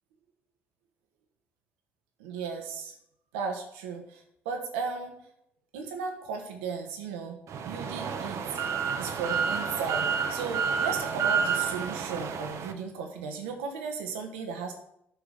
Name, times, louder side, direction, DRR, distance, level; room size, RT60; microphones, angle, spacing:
voice 1, 2.2-2.9 3.3-5.2 5.7-8.6 9.0-14.7, right 5 dB, 75° right, 3 dB, 1.6 m, -35 dB
sound 1, 7.5-12.7, right 6 dB, 55° right, 1.1 m, -30 dB
11.0 x 4.8 x 6.5 m, 0.76 s
figure-of-eight pair, 50°, 6 cm